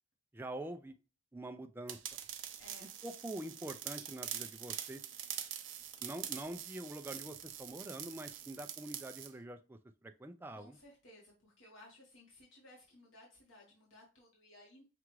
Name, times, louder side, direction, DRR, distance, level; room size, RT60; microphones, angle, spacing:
voice 1, 0.3-0.9 1.3-2.0 3.0-5.0 6.0-10.8, right 1 dB, 10° right, 6 dB, 0.3 m, -45 dB
sound 1, 1.9-9.3, right 10 dB, 70° right, 0.5 m, -45 dB
voice 2, 2.6-2.9 10.5-14.8, left 1 dB, 85° left, -3 dB, 1.4 m, -59 dB
5.8 x 2.4 x 3.0 m, 0.34 s
head